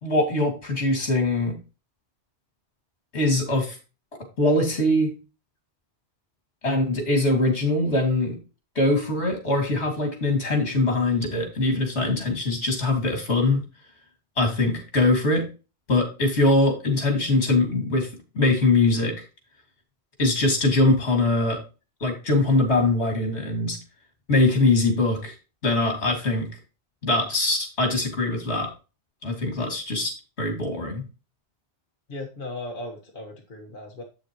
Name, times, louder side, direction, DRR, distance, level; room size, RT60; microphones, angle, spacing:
voice 1, 0.0-1.6 3.1-3.8 4.4-5.1 6.6-8.4 8.7-13.6 14.4-15.4 15.9-18.1 18.3-19.1 20.2-21.6 22.0-23.8 24.3-25.3 25.6-26.5 27.0-28.7 29.2-31.0, left 2 dB, 75° left, 3 dB, 2.7 m, -22 dB
voice 2, 32.1-34.0, left 2 dB, 50° left, 0 dB, 1.6 m, -37 dB
8.2 x 7.0 x 3.0 m, 0.31 s
omnidirectional pair, 1.1 m